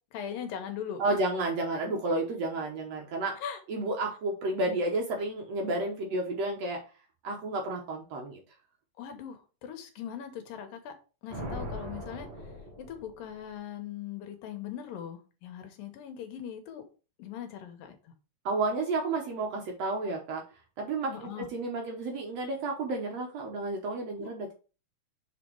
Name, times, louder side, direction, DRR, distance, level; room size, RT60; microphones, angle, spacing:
voice 1, 0.1-1.0 3.4-3.6 9.0-10.9 11.2-16.8 17.2-18.1 21.1-21.5 24.2-24.3, left 9 dB, 85° left, 7 dB, 2.8 m, -40 dB
voice 2, 1.0-3.4 3.7-6.8 7.2-8.4 18.5-20.4 20.8-24.5, right 2 dB, 65° right, 1 dB, 1.8 m, -31 dB
Thunder, 11.3-13.5, equal, 35° right, 2.1 m, -40 dB
6.2 x 4.2 x 4.5 m, 0.33 s
omnidirectional pair, 3.9 m